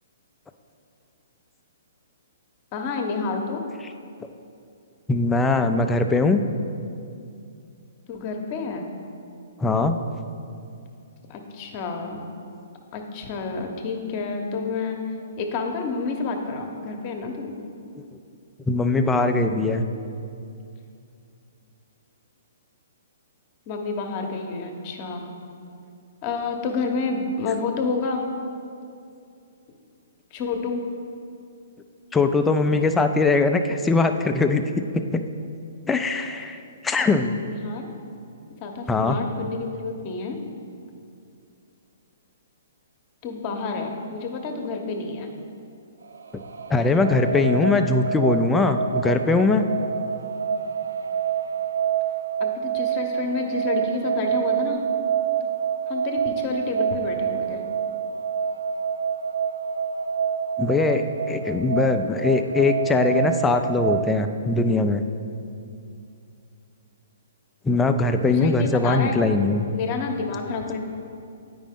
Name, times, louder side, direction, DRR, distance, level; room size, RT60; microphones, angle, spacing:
voice 1, 2.7-3.6 8.1-8.9 11.3-12.3 12.9-15.0 15.4-17.5 23.7-25.3 26.2-28.2 30.3-30.8 37.4-37.9 38.6-40.4 43.2-45.3 52.4-54.8 55.9-57.6 68.3-69.2 69.7-70.8, left 4 dB, 40° left, 3 dB, 0.9 m, -29 dB
voice 2, 5.1-6.4 9.6-10.0 18.7-19.8 32.1-34.7 35.1-35.2 35.9-36.6 36.8-37.4 38.9-39.2 46.7-49.6 60.6-65.0 67.6-69.7, left 3 dB, 10° left, 7 dB, 0.4 m, -21 dB
sound 1, 46.0-64.2, right 7 dB, 85° right, 0.4 m, -27 dB
8.9 x 5.1 x 3.6 m, 2.5 s
hypercardioid pair, 135°, 0 cm